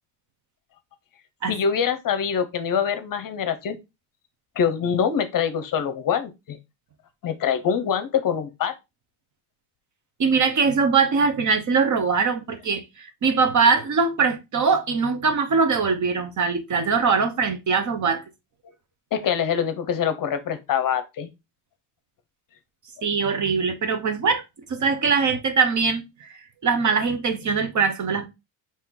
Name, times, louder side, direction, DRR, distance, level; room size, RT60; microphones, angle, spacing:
voice 1, 1.5-3.8 4.6-6.6 7.2-8.7 19.1-21.3, left 7 dB, 45° left, 0.8 m, -24 dB
voice 2, 10.2-18.2 23.0-24.4 24.7-28.3, right 5 dB, 35° right, 0.8 m, -22 dB
4.4 x 3.0 x 3.7 m
cardioid pair, 110°, 49 cm